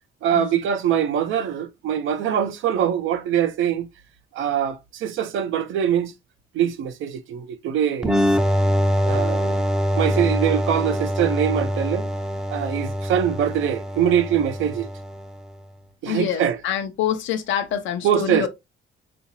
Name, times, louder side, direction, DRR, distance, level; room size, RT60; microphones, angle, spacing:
voice 1, 0.2-3.9 4.3-6.1 6.5-8.2 9.0-9.6 9.9-12.1 12.5-14.9 16.0-16.6 18.0-18.5, right 9 dB, 80° right, 0.6 m, -23 dB
sound 1, 8.0-15.5, equal, 5° right, 0.4 m, -24 dB
voice 2, 16.1-18.5, left 9 dB, 75° left, 0.6 m, -26 dB
3.7 x 2.5 x 2.9 m
cardioid pair, 90°, 20 cm